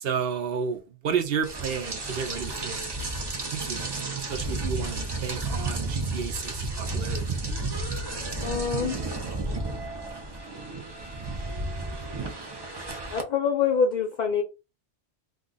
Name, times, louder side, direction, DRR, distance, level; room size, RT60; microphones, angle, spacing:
voice 1, 0.0-3.0 3.5-3.9 4.3-7.4, right 6 dB, 65° right, 0.7 m, -31 dB
Rain, 1.4-13.2, right 2 dB, 40° right, 0.4 m, -32 dB
voice 2, 8.4-9.0 13.1-14.4, left 6 dB, 55° left, 0.5 m, -25 dB
2.5 x 2.3 x 3.7 m
omnidirectional pair, 1.1 m